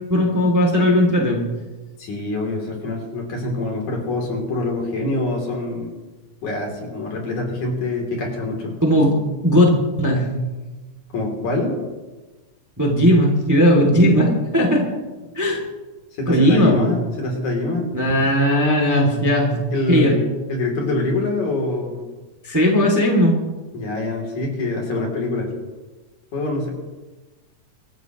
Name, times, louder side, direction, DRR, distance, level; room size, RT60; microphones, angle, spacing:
voice 1, 0.1-1.4 8.8-9.1 9.4-9.7 10.0-10.3 12.8-14.9 15.3-15.6 16.3-16.9 17.9-19.5 19.9-20.1 22.4-23.4, equal, 5° right, 0 dB, 2.0 m, -17 dB
voice 2, 2.0-5.9 6.4-8.7 11.1-11.8 16.1-17.9 19.7-20.2 20.5-22.0 23.7-25.5 26.3-26.7, left 2 dB, 65° left, 0 dB, 4.5 m, -25 dB
25.5 x 13.5 x 3.1 m, 1.2 s
omnidirectional pair, 3.6 m